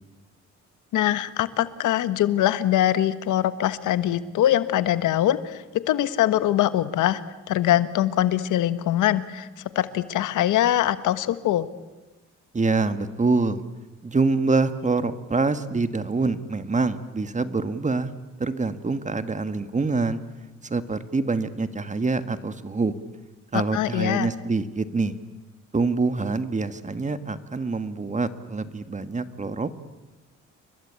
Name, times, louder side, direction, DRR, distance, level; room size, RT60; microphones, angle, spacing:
voice 1, 0.9-7.2 7.5-9.5 9.7-11.7 23.5-24.3, left 12 dB, 80° left, 13 dB, 1.3 m, -23 dB
voice 2, 12.5-13.6 14.0-18.1 18.4-20.2 20.6-22.9 23.5-25.2 25.7-29.7, right 3 dB, 25° right, 10 dB, 1.7 m, -25 dB
30.0 x 22.5 x 8.5 m, 1.2 s
cardioid pair, 90°, 30 cm